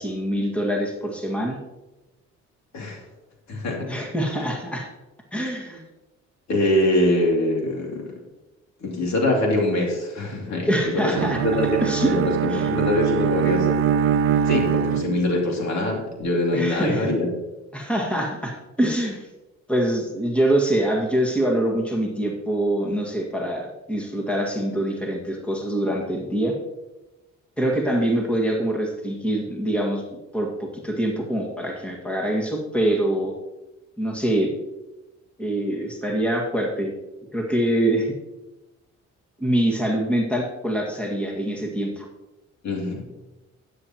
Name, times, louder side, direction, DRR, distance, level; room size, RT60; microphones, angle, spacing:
voice 1, 0.0-1.6 3.9-4.9 5.3-5.8 10.7-11.4 11.8-12.2 12.5-12.7 16.5-17.1 17.7-19.3 19.7-26.5 27.6-30.0 30.3-33.3 34.0-34.5 35.4-36.9 37.3-38.1 39.4-42.1, right 1 dB, 5° left, 0 dB, 1.9 m, -24 dB
voice 2, 3.5-4.0 6.5-8.1 8.8-11.7 12.0-13.8 14.4-17.3 42.6-43.0, left 1 dB, 65° left, 0 dB, 2.8 m, -23 dB
Bowed string instrument, 11.1-15.6, right 7 dB, 45° right, 0.5 m, -23 dB
12.0 x 9.1 x 3.0 m, 1.0 s
cardioid pair, 90°, 30 cm